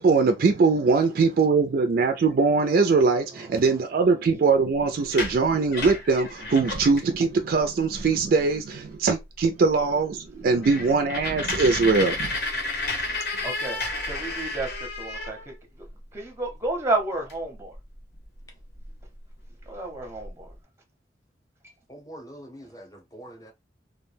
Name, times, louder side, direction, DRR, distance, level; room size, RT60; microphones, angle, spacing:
voice 1, 0.0-12.4, right 4 dB, 50° right, 0.3 m, -22 dB
sound 1, 5.0-7.1 7.6-7.7 7.9-8.4 8.9-9.0 9.4-9.5 9.8-9.9 10.2-15.9 17.3-17.4 17.7-19.0 19.6-19.7 20.0-20.5, left 2 dB, 60° left, 0.8 m, -32 dB
voice 2, 13.4-15.5 16.1-17.7 19.7-20.5, right 2 dB, 15° right, 0.6 m, -31 dB
voice 3, 21.9-23.5, equal, 20° left, 0.7 m, -44 dB
2.3 x 2.1 x 3.2 m
head